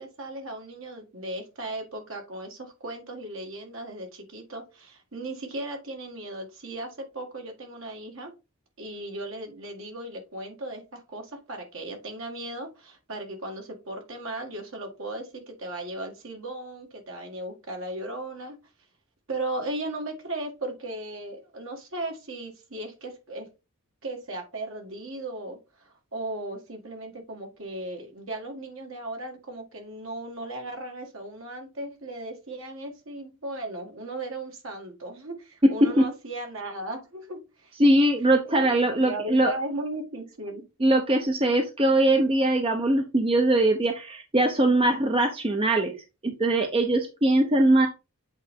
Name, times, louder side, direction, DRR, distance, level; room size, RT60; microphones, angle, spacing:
voice 1, 0.0-8.3 8.8-18.6 19.3-23.5 24.0-37.7 38.5-40.6, right 1 dB, 65° right, 1.9 m, -36 dB
voice 2, 37.8-39.5 40.8-45.9 46.2-47.9, right 1 dB, 25° right, 0.7 m, -21 dB
8.1 x 4.0 x 3.6 m
head